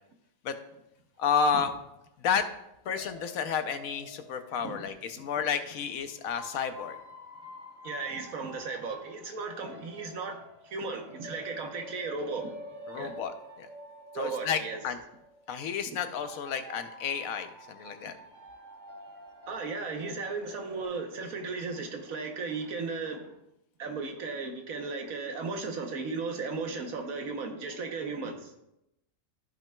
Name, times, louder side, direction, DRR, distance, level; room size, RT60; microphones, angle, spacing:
voice 1, 1.2-1.7 2.2-2.5 2.8-7.0 12.9-13.7 14.1-15.0 15.5-18.2, left 6 dB, 75° left, 9 dB, 1.1 m, -31 dB
sound 1, 2.9-5.4 6.2-20.8, left 1 dB, 55° right, 1.9 m, -48 dB
voice 2, 7.8-12.5 12.9-13.1 14.1-14.8 19.5-23.4 23.8-28.5, right 4 dB, 75° right, 4 dB, 1.4 m, -36 dB
14.5 x 5.9 x 2.3 m, 0.85 s
omnidirectional pair, 1.5 m